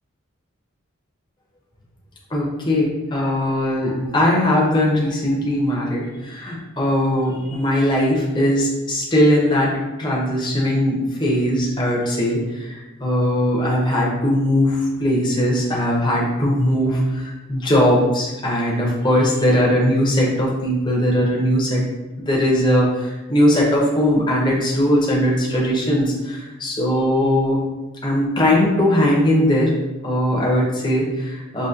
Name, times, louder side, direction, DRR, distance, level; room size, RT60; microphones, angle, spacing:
voice 1, 2.3-21.8 22.2-27.6 28.0-29.7 30.0-31.7, left 1 dB, 20° left, -4 dB, 0.9 m, -19 dB
6.3 x 2.9 x 2.9 m, 1.1 s
head